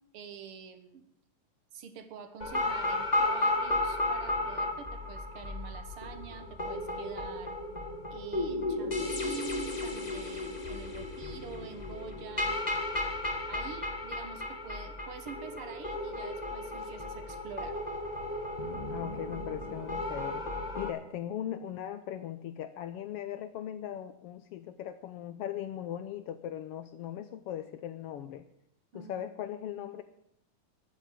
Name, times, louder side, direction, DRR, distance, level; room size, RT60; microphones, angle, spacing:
voice 1, 0.1-1.1 1.7-7.5 8.1-12.6 13.5-17.8 28.9-29.3, right 7 dB, 55° right, 9 dB, 1.8 m, -46 dB
sound 1, 2.4-20.9, left 2 dB, 25° left, 1.0 m, -34 dB
voice 2, 18.9-20.4 20.8-28.4 28.9-30.0, left 10 dB, 90° left, 11 dB, 1.3 m, -39 dB
11.0 x 9.5 x 8.4 m, 0.74 s
omnidirectional pair, 3.4 m